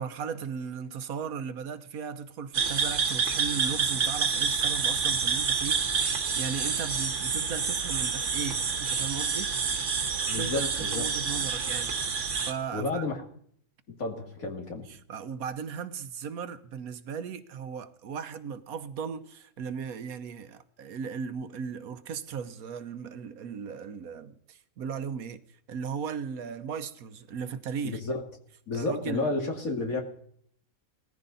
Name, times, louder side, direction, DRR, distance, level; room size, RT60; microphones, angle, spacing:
voice 1, 0.0-9.6 10.3-11.9 12.4-13.0 14.8-25.4 25.7-28.0 28.7-29.3, right 6 dB, 75° right, 1.4 m, -37 dB
sound 1, 2.5-12.5, right 5 dB, 55° right, 1.5 m, -28 dB
voice 2, 10.3-11.0 12.7-13.2 14.0-14.9 27.8-28.2 28.7-30.0, left 3 dB, 70° left, 2.7 m, -31 dB
18.5 x 14.5 x 4.0 m
omnidirectional pair, 1.5 m